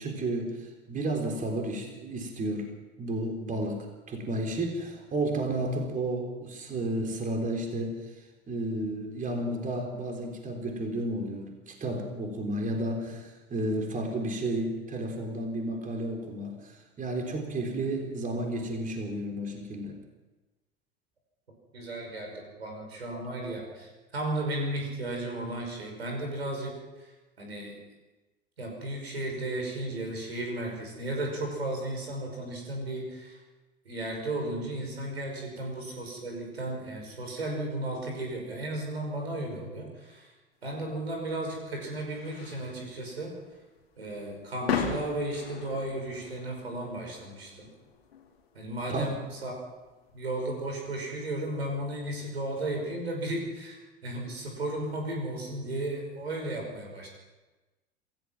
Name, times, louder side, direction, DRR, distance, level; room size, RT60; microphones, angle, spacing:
voice 1, 0.0-2.7 3.0-8.1 8.5-20.0 48.9-49.1, right 1 dB, 25° right, 3 dB, 3.8 m, -32 dB
voice 2, 21.7-26.7 27.0-27.1 27.4-27.8 28.6-33.4 33.9-40.3 40.6-43.3 44.0-47.7 48.5-49.5 50.1-57.1, right 1 dB, 80° right, 1 dB, 5.6 m, -34 dB
sound 1, 40.8-52.1, left 6 dB, 75° left, 2.6 m, -40 dB
27.0 x 15.5 x 6.1 m, 1.2 s
figure-of-eight pair, 75°, 31 cm